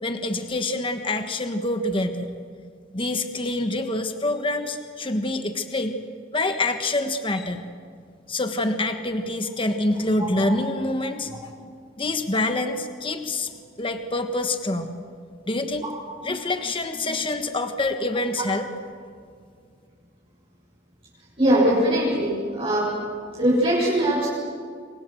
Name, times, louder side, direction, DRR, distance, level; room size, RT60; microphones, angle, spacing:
voice 1, 0.0-2.3 2.9-6.0 6.3-7.6 8.3-11.5 12.0-13.5 13.8-14.9 15.5-15.9 16.2-18.7, left 2 dB, 30° left, 7 dB, 1.4 m, -26 dB
voice 2, 21.4-22.9 23.4-24.3, right 1 dB, 30° right, -7 dB, 7.7 m, -21 dB
28.0 x 24.5 x 7.9 m, 2.1 s
head